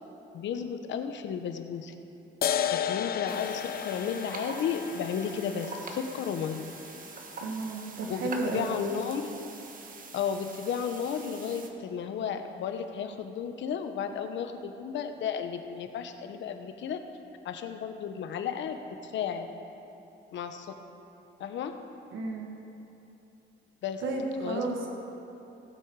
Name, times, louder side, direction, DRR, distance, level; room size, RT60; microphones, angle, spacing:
voice 1, 0.3-1.9 2.7-6.7 8.1-9.3 10.1-17.0 17.4-19.5 20.3-20.7 21.4-21.7 23.8-24.0 24.4-24.9, left 7 dB, 70° left, 7 dB, 1.0 m, -33 dB
sound 1, 2.4-9.4, left 9 dB, 50° left, 0.6 m, -35 dB
sound 2, 3.3-11.7, right 4 dB, 45° right, 1.3 m, -44 dB
voice 2, 7.4-8.8 22.1-22.5 24.0-24.8, right 3 dB, 80° right, 1 dB, 1.4 m, -32 dB
17.0 x 7.9 x 4.8 m, 3.0 s
cardioid pair, 95°, 20 cm